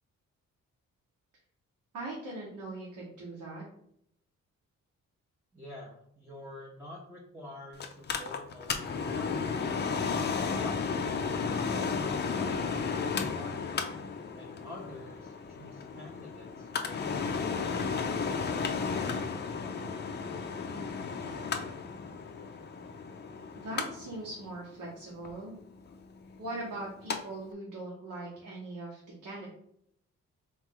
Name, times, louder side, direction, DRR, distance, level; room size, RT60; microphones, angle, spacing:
voice 1, 1.9-3.6 23.5-25.5 26.4-29.5, right 2 dB, 80° right, -4 dB, 1.2 m, -40 dB
voice 2, 5.5-9.9 10.5-13.7 14.3-18.9, left 1 dB, 10° right, -3 dB, 0.6 m, -48 dB
Mechanical fan, 7.8-27.2 27.5-27.6, left 5 dB, 35° left, 0.4 m, -34 dB
3.7 x 3.1 x 3.7 m, 0.73 s
wide cardioid pair, 140°, 30 cm